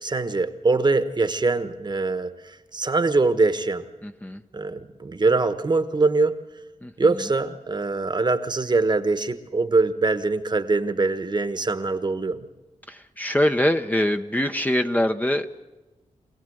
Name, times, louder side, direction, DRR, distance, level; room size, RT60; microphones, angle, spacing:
voice 1, 0.0-3.9 4.5-6.4 7.0-12.5, right 3 dB, 35° right, 11 dB, 1.2 m, -23 dB
voice 2, 4.0-4.4 6.8-6.9 12.9-15.5, left 1 dB, 10° left, 6 dB, 0.8 m, -23 dB
26.0 x 17.5 x 7.9 m, 1.1 s
wide cardioid pair, 90°, 13 cm